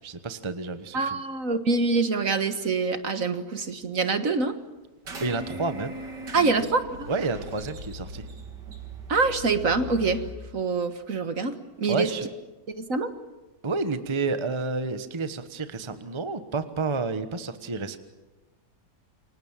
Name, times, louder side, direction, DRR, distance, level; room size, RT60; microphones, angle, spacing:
voice 1, 0.0-1.2 5.2-6.0 6.3-6.7 7.1-8.3 11.9-12.3 13.6-18.0, right 3 dB, 20° right, 10 dB, 1.1 m, -30 dB
voice 2, 0.9-4.5 6.3-7.1 9.1-10.2 10.5-12.1 12.7-13.1, right 4 dB, 50° right, 9 dB, 1.8 m, -25 dB
sound 1, 5.0-10.3, equal, 75° right, 3.1 m, -40 dB
28.5 x 24.5 x 7.4 m, 1.1 s
omnidirectional pair, 1.9 m